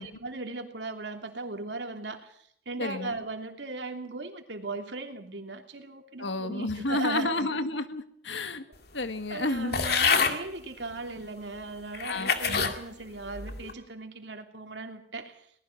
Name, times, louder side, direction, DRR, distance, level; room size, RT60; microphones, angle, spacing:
voice 1, 0.0-7.5 9.3-15.5, right 3 dB, 75° right, 5 dB, 3.0 m, -38 dB
voice 2, 2.8-3.1 6.2-8.6 8.9-9.8 12.1-12.7, left 2 dB, 85° left, 10 dB, 1.7 m, -31 dB
sound 1, 9.7-10.4 11.2-11.3 11.9-12.8 13.3-13.7, left 5 dB, 60° left, 2.1 m, -26 dB
23.0 x 19.0 x 5.9 m, 0.63 s
head